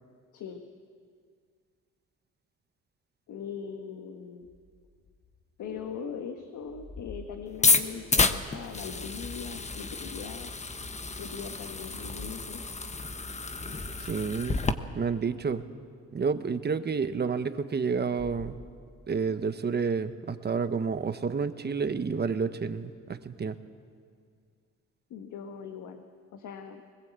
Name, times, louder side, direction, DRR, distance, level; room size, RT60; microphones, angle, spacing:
voice 1, 3.3-4.5 5.6-10.5 11.2-12.6 25.1-26.0 26.3-26.8, left 7 dB, 75° left, 6 dB, 1.4 m, -40 dB
sound 1, 4.4-6.1 6.4-8.1 9.0-10.1 10.6-10.7 11.9-12.4 12.8-12.9 13.3-13.4 13.7-15.0 18.0-19.1, left 2 dB, 40° left, 3.3 m, -49 dB
sound 2, 7.5-14.7, left 3 dB, 25° left, 1.1 m, -30 dB
voice 2, 14.1-14.6 14.9-15.6 16.1-18.6 19.1-23.6, right 5 dB, 35° right, 10 dB, 1.2 m, -30 dB
20.5 x 20.5 x 8.2 m, 2.1 s
cardioid pair, 90°, 30 cm